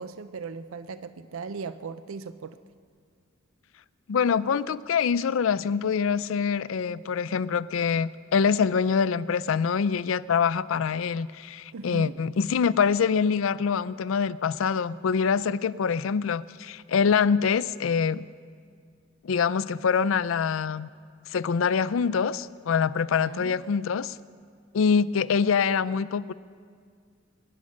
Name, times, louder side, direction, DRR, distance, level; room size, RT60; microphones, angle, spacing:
voice 1, 0.0-2.6 11.7-12.2 23.1-23.6, right 4 dB, 75° right, 12 dB, 0.5 m, -38 dB
voice 2, 4.1-18.3 19.2-20.9 21.3-24.2 24.7-26.3, left 6 dB, 70° left, 17 dB, 0.4 m, -25 dB
22.0 x 9.8 x 6.4 m, 2.1 s
head